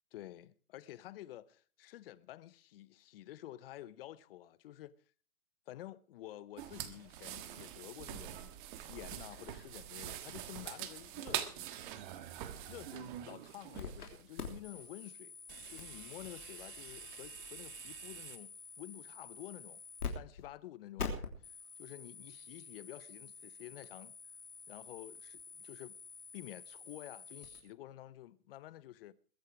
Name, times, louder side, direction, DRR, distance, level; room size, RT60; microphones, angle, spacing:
voice 1, 0.1-4.9 5.7-8.5 8.8-11.9 12.7-15.4 15.7-19.8 20.1-24.2 24.7-26.0 26.3-29.1, left 14 dB, 40° left, 0.8 m, -50 dB
sound 1, 6.6-15.0 15.5-18.4, right 11 dB, 35° right, 1.5 m, -45 dB
Bowed string instrument, 11.9-14.9, right 5 dB, 80° right, 3.0 m, -68 dB
sound 2, 13.7-14.1 14.4-20.1 20.4-20.5 21.0-27.6, left 6 dB, 90° left, 3.4 m, -47 dB
21.5 x 8.3 x 4.7 m
hypercardioid pair, 140°, 44 cm